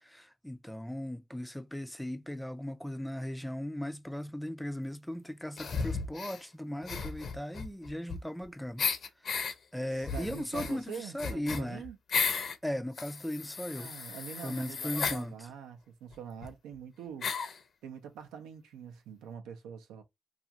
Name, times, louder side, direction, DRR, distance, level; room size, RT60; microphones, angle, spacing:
voice 1, 0.0-8.9 9.2-11.8 12.6-13.9 14.4-15.5, left 1 dB, 5° left, 0.3 m, -38 dB
sound 1, 5.6-6.4 6.8-8.4 8.8-9.5 10.0-12.6 12.9-15.2 16.1-16.2 16.4-16.5 17.2-17.6, left 5 dB, 50° left, 0.6 m, -34 dB
voice 2, 9.9-12.0 13.7-17.3 17.8-20.0, right 8 dB, 90° right, 0.5 m, -45 dB
2.4 x 2.4 x 2.8 m
cardioid pair, 90°, 0 cm